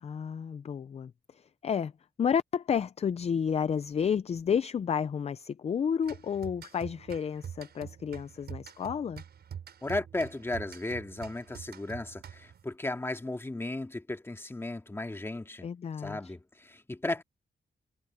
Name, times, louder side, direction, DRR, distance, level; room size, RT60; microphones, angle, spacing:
voice 1, 0.0-1.9 2.2-9.2 15.6-16.3, left 7 dB, 40° left, 0.4 m, -31 dB
sound 1, 6.0-12.7, right 8 dB, 80° right, 6.4 m, -45 dB
voice 2, 9.8-15.7 16.0-17.2, left 2 dB, 15° left, 2.1 m, -35 dB
wide cardioid pair, 150°, 17 cm